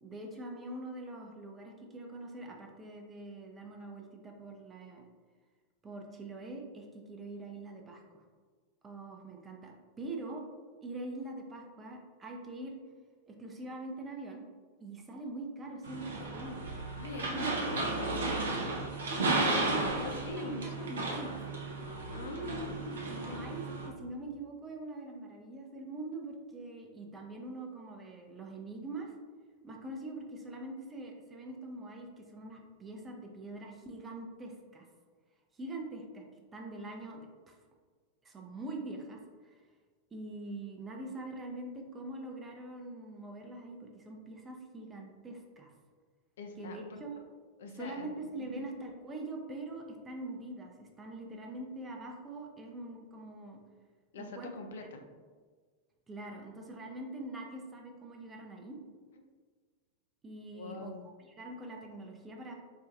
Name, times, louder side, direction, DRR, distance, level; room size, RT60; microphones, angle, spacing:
voice 1, 0.0-5.1 5.8-8.0 8.8-10.4 10.8-12.7 13.3-14.4 14.8-16.7 17.2-17.8 18.1-18.2 19.6-20.0 20.4-21.3 23.1-29.1 29.6-34.9 35.5-36.2 36.5-37.6 38.2-39.6 40.1-45.7 46.6-47.2 47.8-53.6 54.1-54.5 56.1-58.8 60.2-60.9 61.2-62.5, right 2 dB, 20° right, 1 dB, 0.5 m, -43 dB
sound 1, 15.8-23.9, right 2 dB, 65° right, 0.5 m, -34 dB
voice 2, 17.0-18.1 19.6-20.9 22.1-23.5 46.4-47.0 47.6-48.7 54.1-55.0 59.1-59.2 60.5-61.0, left 2 dB, 60° left, 5 dB, 0.3 m, -43 dB
4.4 x 2.3 x 2.5 m, 1.5 s
figure-of-eight pair, 90°, 0 cm